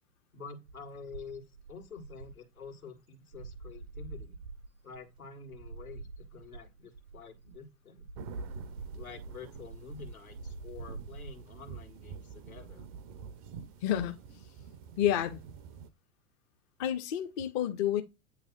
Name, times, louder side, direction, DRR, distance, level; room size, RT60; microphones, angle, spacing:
voice 1, 0.3-4.4 4.8-8.1 8.9-12.9, left 5 dB, 75° left, 1.8 m, -48 dB
sound 1, 0.7-2.9 3.3-7.6 8.0-11.3, right 3 dB, 80° right, 0.7 m, -45 dB
sound 2, 8.2-15.9, right 7 dB, 25° right, 0.4 m, -48 dB
voice 2, 13.8-14.1 15.0-15.4 16.8-18.0, left 11 dB, 30° left, 0.5 m, -29 dB
8.3 x 3.1 x 3.7 m
figure-of-eight pair, 100°, 43 cm